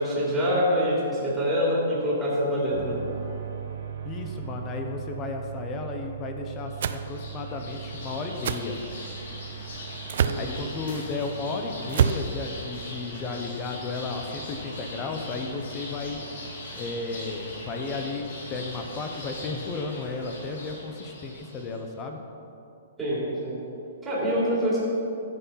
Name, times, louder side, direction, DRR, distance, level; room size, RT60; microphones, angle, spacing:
voice 1, 0.0-3.0 10.2-10.5 23.0-23.6 24.0-24.8, equal, 5° right, -8 dB, 3.0 m, -25 dB
sound 1, 2.7-18.8, right 8 dB, 70° right, 2.4 m, -41 dB
voice 2, 4.0-8.8 10.3-16.2 16.8-22.2, left 3 dB, 15° left, 4 dB, 0.8 m, -34 dB
sound 2, 6.7-21.8, left 2 dB, 60° left, 3.0 m, -41 dB
sound 3, 6.8-7.0 8.4-8.6 10.1-10.4 11.9-12.3, right 8 dB, 50° right, 0.5 m, -24 dB
12.0 x 8.3 x 5.7 m, 2.8 s
hypercardioid pair, 175°, 0 cm